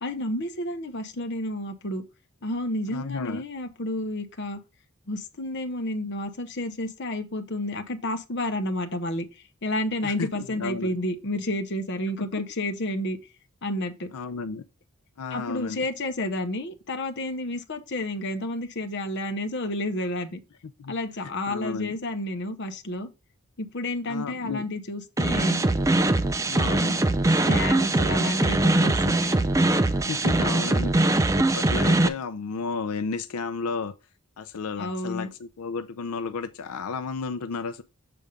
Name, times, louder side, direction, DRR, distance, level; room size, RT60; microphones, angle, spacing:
voice 1, 0.0-2.0 2.4-4.6 5.1-9.3 9.6-13.2 13.6-14.1 15.3-20.4 20.9-23.1 23.6-25.6 27.5-29.4 34.8-35.3, left 1 dB, 50° left, 0.9 m, -30 dB
voice 2, 2.9-3.4 10.0-10.9 12.3-12.4 14.1-14.6 15.2-15.9 20.8-20.9 21.2-21.9 24.1-24.7 26.4-27.0 29.9-33.9 34.4-37.8, left 4 dB, 85° left, 0.5 m, -33 dB
sound 1, 25.2-32.1, right 2 dB, 15° right, 0.3 m, -22 dB
6.9 x 3.5 x 5.1 m
head